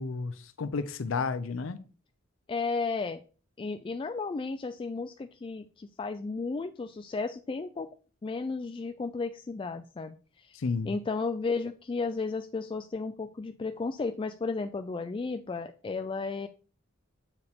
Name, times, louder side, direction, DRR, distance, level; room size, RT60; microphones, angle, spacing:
voice 1, 0.0-1.8 10.5-11.0, left 4 dB, 75° left, 0.5 m, -32 dB
voice 2, 2.5-3.2 3.6-7.9 8.2-10.6 10.8-16.5, left 4 dB, 25° left, 0.3 m, -34 dB
7.8 x 4.8 x 3.5 m
head